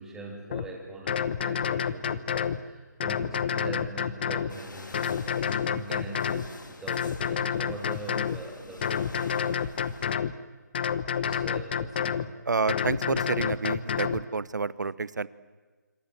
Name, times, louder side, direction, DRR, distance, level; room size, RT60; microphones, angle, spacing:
voice 1, 0.0-5.3 5.7-9.7 11.2-12.3, right 2 dB, 5° right, 0 dB, 3.0 m, -42 dB
sound 1, 0.5-0.7 1.1-2.6 3.0-4.5 4.9-6.5 6.9-8.4 8.8-10.3 10.7-12.3 12.7-14.2, left 8 dB, 35° left, 0.9 m, -29 dB
sound 2, 4.5-10.1, left 2 dB, 85° left, 2.9 m, -47 dB
voice 2, 12.5-15.3, right 4 dB, 70° right, 19 dB, 1.1 m, -29 dB
26.5 x 25.5 x 7.7 m, 1.3 s
figure-of-eight pair, 160°, 10 cm